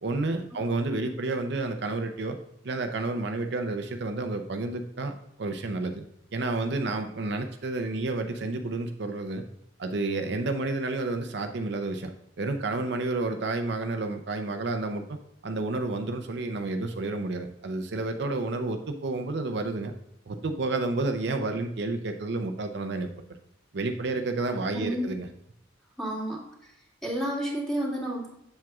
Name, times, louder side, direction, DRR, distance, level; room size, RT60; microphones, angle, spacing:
voice 1, 0.0-2.4 2.6-6.1 6.3-9.4 9.8-12.1 12.4-15.2 15.4-19.9 20.3-23.1 23.7-25.3, right 2 dB, 65° right, 6 dB, 0.6 m, -30 dB
voice 2, 24.7-25.1 26.0-26.7 27.0-28.3, right 1 dB, 5° left, -5 dB, 2.3 m, -31 dB
7.5 x 7.4 x 2.3 m, 0.80 s
head